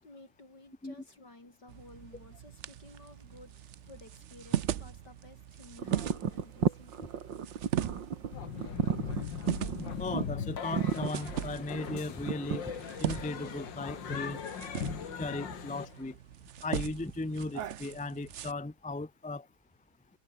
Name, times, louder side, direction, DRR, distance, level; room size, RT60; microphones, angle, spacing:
voice 1, 0.0-3.6 3.9-7.1, left 2 dB, 70° left, 8.3 m, -54 dB
sound 1, 1.7-18.5, right 10 dB, 55° right, 0.8 m, -40 dB
sound 2, 5.8-12.8, right 7 dB, 90° right, 2.5 m, -34 dB
sound 3, 8.3-16.1, left 7 dB, 90° left, 2.4 m, -40 dB
voice 2, 10.0-12.7 13.0-14.4 15.2-16.1 16.6-19.4, left 2 dB, 10° left, 0.3 m, -37 dB
omnidirectional pair, 1.9 m